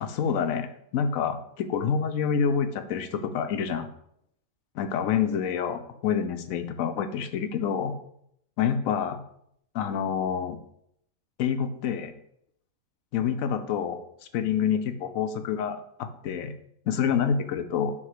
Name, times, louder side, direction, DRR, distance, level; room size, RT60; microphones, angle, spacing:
voice 1, 0.0-3.9 4.8-7.9 8.6-9.2 9.7-10.6 11.4-12.1 13.1-14.0 14.3-16.6 16.9-17.9, left 7 dB, 75° left, 9 dB, 1.0 m, -27 dB
6.0 x 3.5 x 4.8 m, 0.71 s
omnidirectional pair, 1.4 m